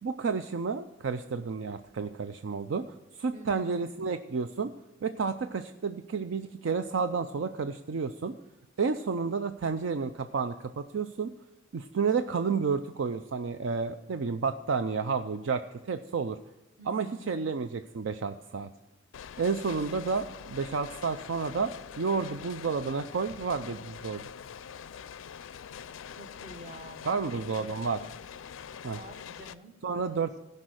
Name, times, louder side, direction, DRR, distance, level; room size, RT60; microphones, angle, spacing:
voice 1, 0.0-4.7 5.0-8.4 8.8-11.3 11.7-16.4 16.9-18.7 19.4-24.2 27.1-28.0 28.8-29.0 29.8-30.4, right 5 dB, 70° right, 9 dB, 0.5 m, -31 dB
voice 2, 3.3-3.9 16.8-17.4 26.2-27.7 28.0-28.1 28.9-30.4, right 1 dB, 40° right, 5 dB, 1.3 m, -49 dB
sound 1, 19.1-29.5, left 7 dB, 85° left, 0.4 m, -44 dB
15.5 x 5.4 x 6.3 m, 0.99 s
head